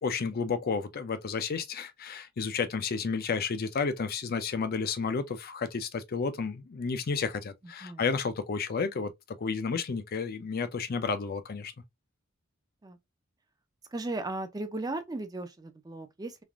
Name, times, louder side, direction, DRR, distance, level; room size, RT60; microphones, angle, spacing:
voice 1, 0.0-9.1 9.4-11.7, left 5 dB, 45° left, 0.5 m, -31 dB
voice 2, 13.9-16.4, right 2 dB, 20° right, 0.5 m, -36 dB
3.3 x 2.5 x 2.3 m
head